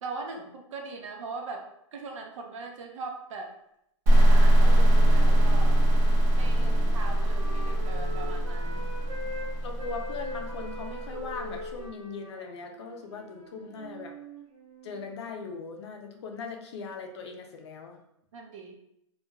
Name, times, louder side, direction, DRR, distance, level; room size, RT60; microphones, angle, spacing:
voice 1, 0.0-1.6 1.9-3.5 4.1-5.8 6.3-8.9 13.6-13.9 18.3-18.7, right 3 dB, 70° right, 2 dB, 0.6 m, -40 dB
sound 1, 4.1-11.6, right 1 dB, 30° right, 0.8 m, -22 dB
sound 2, 4.9-11.1, right 1 dB, 5° left, 0.5 m, -48 dB
Wind instrument woodwind instrument, 5.8-9.5 9.8-15.1, equal, 90° right, 1.0 m, -43 dB
voice 2, 6.5-6.9 9.6-14.2 14.8-18.0, left 4 dB, 55° left, 3 dB, 0.5 m, -40 dB
2.9 x 2.3 x 2.2 m, 0.78 s
supercardioid pair, 175°, 17 cm